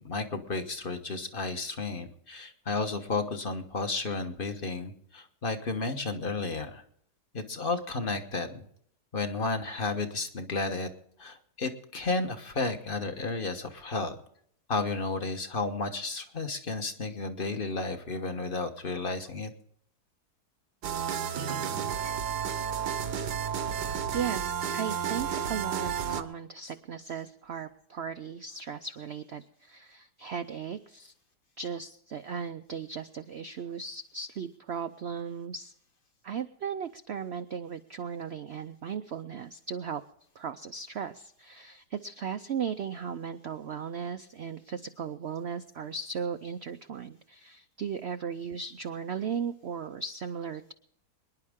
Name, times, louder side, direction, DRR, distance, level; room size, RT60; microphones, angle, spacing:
voice 1, 0.0-6.8 7.3-8.5 9.1-10.9 11.2-14.2 14.7-19.5, left 3 dB, 35° left, 7 dB, 1.3 m, -32 dB
sound 1, 20.8-26.2, right 8 dB, 80° right, 1.6 m, -32 dB
voice 2, 23.6-31.1 31.6-35.7 36.2-40.0 40.4-50.7, right 6 dB, 65° right, 10 dB, 0.6 m, -37 dB
24.5 x 11.0 x 3.6 m, 0.68 s
omnidirectional pair, 1.8 m